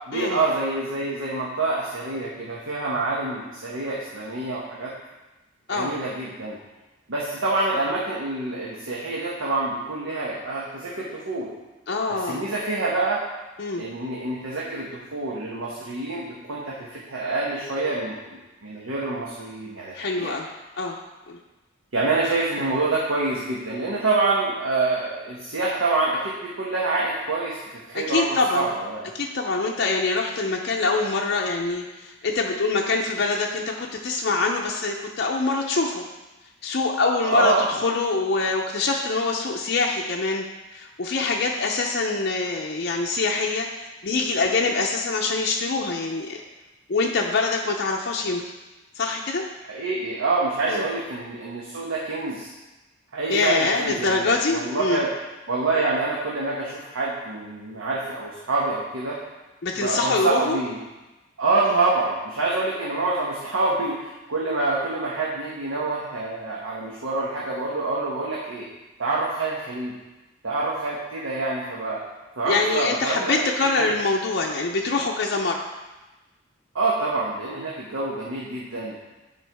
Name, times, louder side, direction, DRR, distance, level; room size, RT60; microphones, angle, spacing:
voice 1, 0.1-4.9 5.7-6.6 7.1-11.5 12.1-13.2 13.8-18.2 18.6-20.3 21.9-29.1 37.2-37.6 49.7-52.5 53.1-55.1 55.5-59.2 59.8-60.8 61.4-68.7 69.0-69.9 70.4-72.0 72.4-73.4 73.8-73.9 76.7-79.0, right 3 dB, 90° right, -5 dB, 1.0 m, -26 dB
voice 2, 11.9-12.4 13.6-13.8 19.9-20.5 20.8-21.0 21.3-21.4 27.9-28.7 29.1-36.0 36.6-40.4 40.7-46.4 46.9-48.4 49.0-49.4 50.7-50.9 53.3-55.0 59.6-60.6 61.6-61.7 72.5-75.7, left 3 dB, 50° left, 0 dB, 0.5 m, -24 dB
9.2 x 4.5 x 3.4 m, 1.1 s
head